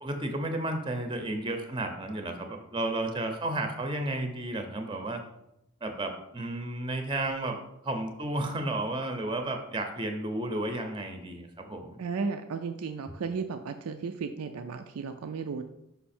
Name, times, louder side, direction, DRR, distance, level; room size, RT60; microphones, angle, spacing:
voice 1, 0.0-5.2 5.8-7.6 7.8-12.0, right 2 dB, 20° right, 5 dB, 0.6 m, -32 dB
voice 2, 12.0-15.6, right 5 dB, 85° right, 7 dB, 0.4 m, -34 dB
5.7 x 5.5 x 4.3 m, 0.84 s
head